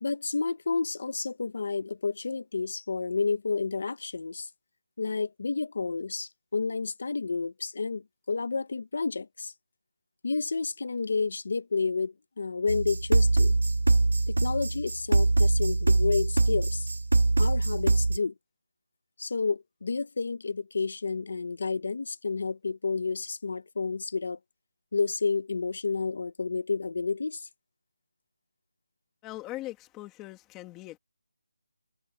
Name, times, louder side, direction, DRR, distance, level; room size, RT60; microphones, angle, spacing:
voice 1, 0.0-4.5 5.0-9.5 10.2-13.5 14.3-16.9 17.4-18.3 19.2-24.4 24.9-27.5, left 4 dB, 40° left, 1.0 m, -30 dB
sound 1, 12.7-18.2, right 2 dB, 65° right, 0.8 m, -23 dB
voice 2, 29.2-31.0, left 17 dB, 5° left, 2.4 m, -40 dB
figure-of-eight pair, 180°, 0 cm